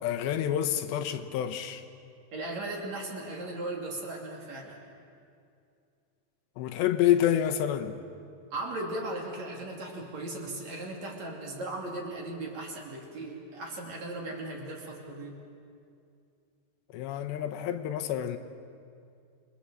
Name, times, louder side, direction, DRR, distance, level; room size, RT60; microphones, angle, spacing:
voice 1, 0.0-1.8 6.6-8.0 16.9-18.4, left 11 dB, 85° left, 3.3 m, -28 dB
voice 2, 2.3-4.8 8.5-15.4, right 2 dB, 45° right, 3.6 m, -37 dB
28.5 x 22.5 x 7.5 m
omnidirectional pair, 5.0 m